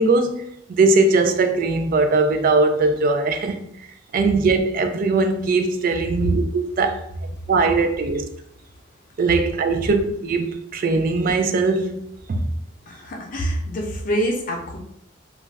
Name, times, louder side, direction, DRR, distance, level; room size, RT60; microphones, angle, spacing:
voice 1, 0.0-3.7 4.1-7.0 7.5-8.3 9.2-12.4, right 3 dB, 45° right, 0.3 m, -20 dB
voice 2, 12.9-14.8, equal, 45° left, 0.6 m, -26 dB
2.4 x 2.1 x 3.3 m
head